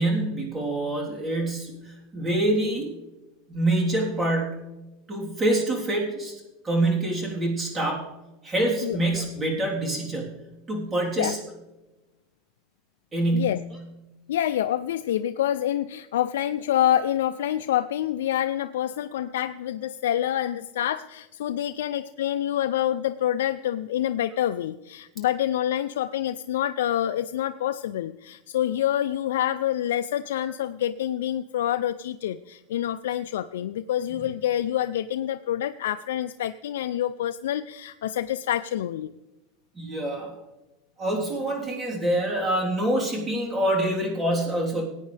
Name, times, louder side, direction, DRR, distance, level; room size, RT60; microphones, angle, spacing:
voice 1, 0.0-2.9 3.5-4.7 5.1-6.3 6.6-8.1 8.4-11.4 13.1-13.8 34.1-34.3 39.7-40.4 41.0-44.8, right 1 dB, 20° right, -2 dB, 3.5 m, -26 dB
voice 2, 14.3-39.1, left 11 dB, 90° left, 9 dB, 0.4 m, -27 dB
19.5 x 9.1 x 3.4 m, 1.0 s
supercardioid pair, 130°, 0 cm